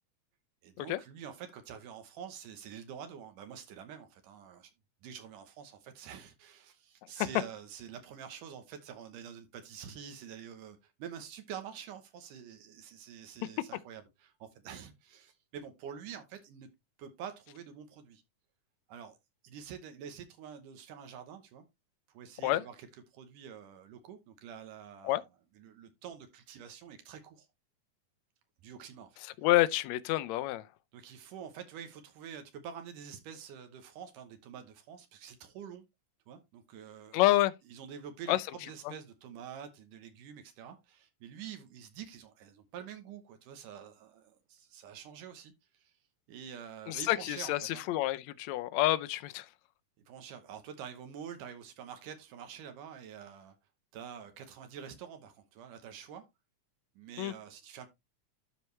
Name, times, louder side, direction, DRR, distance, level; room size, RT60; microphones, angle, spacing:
voice 1, 0.6-4.7 5.0-16.7 17.0-18.2 18.9-19.2 19.4-21.6 22.1-22.9 23.1-25.3 25.6-27.5 28.6-29.2 30.9-35.8 36.3-37.2 37.7-45.9 46.3-47.8 50.1-53.5 53.9-56.2 57.0-57.9, right 8 dB, 80° right, 2.6 m, -47 dB
voice 2, 29.2-30.7 37.1-37.5 38.3-38.4 46.9-49.5 57.2-57.3, left 16 dB, 75° left, 1.7 m, -28 dB
12.5 x 4.6 x 3.2 m
omnidirectional pair, 3.7 m